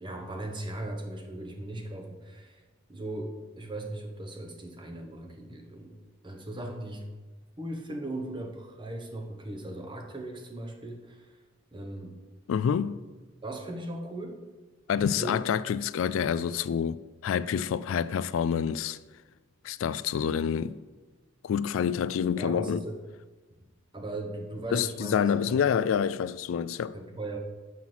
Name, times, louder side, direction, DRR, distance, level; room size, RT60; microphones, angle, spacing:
voice 1, 0.0-2.6 2.9-7.1 7.6-11.4 11.7-12.2 13.4-14.4 15.1-15.4 22.3-23.0 23.9-25.6 26.9-27.4, right 1 dB, 25° right, 1.0 m, -38 dB
voice 2, 12.5-13.0 14.9-19.0 19.6-20.8 21.4-22.8 24.7-26.9, left 7 dB, 80° left, 0.3 m, -27 dB
7.4 x 5.7 x 6.0 m
head